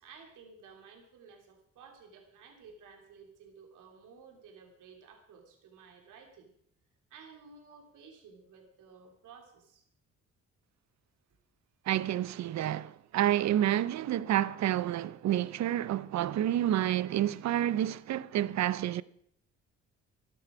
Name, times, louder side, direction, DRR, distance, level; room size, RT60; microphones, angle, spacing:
voice 1, 0.0-6.5 7.1-9.8, right 5 dB, 85° right, 3.3 m, -54 dB
voice 2, 11.9-19.0, right 12 dB, 65° right, 0.7 m, -29 dB
13.5 x 11.5 x 6.2 m
cardioid pair, 90°, 30 cm